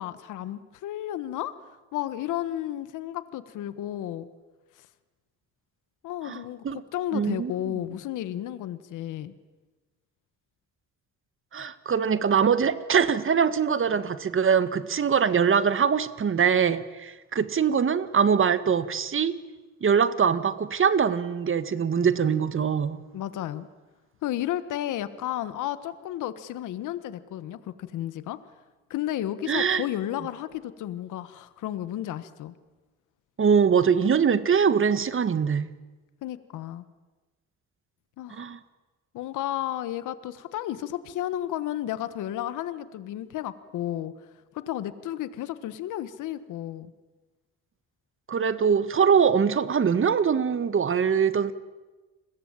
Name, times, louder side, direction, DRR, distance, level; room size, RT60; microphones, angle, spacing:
voice 1, 0.0-1.5 1.9-4.3 6.0-9.3 23.1-23.7 24.2-28.4 28.9-32.5 36.2-36.8 38.2-38.5 39.1-44.1 44.5-46.9, left 12 dB, 85° left, 14 dB, 1.4 m, -32 dB
voice 2, 6.2-6.8 7.1-7.7 11.5-19.4 19.8-23.0 29.5-29.8 33.4-35.7 38.3-38.6 48.3-51.5, right 7 dB, 45° right, 13 dB, 1.7 m, -23 dB
30.0 x 21.5 x 9.0 m, 1.2 s
cardioid pair, 90°, 30 cm